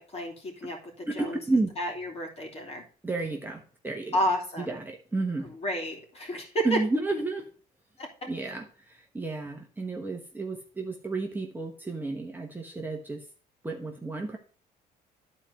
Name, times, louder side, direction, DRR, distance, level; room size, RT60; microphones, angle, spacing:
voice 1, 0.0-1.4 1.8-2.8 4.1-4.8 5.4-6.8 8.0-8.1, equal, 35° left, 1 dB, 3.0 m, -31 dB
voice 2, 1.1-1.7 3.0-4.2 4.6-5.5 6.6-7.5 8.3-13.2 13.6-14.4, right 3 dB, 10° right, 1 dB, 1.2 m, -31 dB
11.0 x 4.5 x 5.2 m, 0.40 s
cardioid pair, 110°, 17 cm